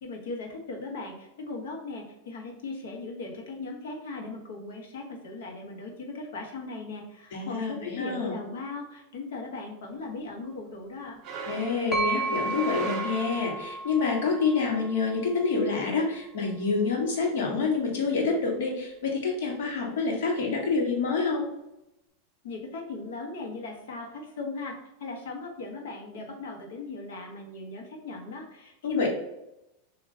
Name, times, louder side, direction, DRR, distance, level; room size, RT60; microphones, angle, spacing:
voice 1, 0.0-11.2 22.4-24.7 25.0-29.1, left 3 dB, 90° left, 1 dB, 1.3 m, -38 dB
voice 2, 7.3-8.3 11.5-21.5 28.8-29.1, left 4 dB, 75° left, -1 dB, 1.6 m, -27 dB
sound 1, 11.2-13.9, right 5 dB, 30° right, 0.6 m, -38 dB
sound 2, 11.9-15.7, right 2 dB, 10° left, 1.0 m, -33 dB
6.5 x 2.8 x 2.8 m, 0.89 s
supercardioid pair, 170°, 0 cm